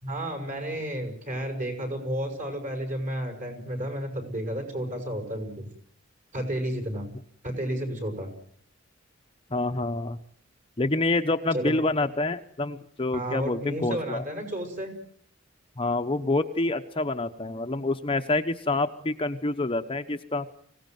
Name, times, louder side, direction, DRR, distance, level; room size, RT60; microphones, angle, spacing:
voice 1, 0.0-5.7 6.3-7.1 7.4-8.3 11.5-11.8 13.1-14.9, right 1 dB, 40° right, 5 dB, 6.3 m, -32 dB
voice 2, 9.5-10.2 10.8-14.2 15.8-20.5, left 2 dB, 25° left, 7 dB, 0.9 m, -27 dB
25.0 x 17.5 x 9.3 m, 0.63 s
head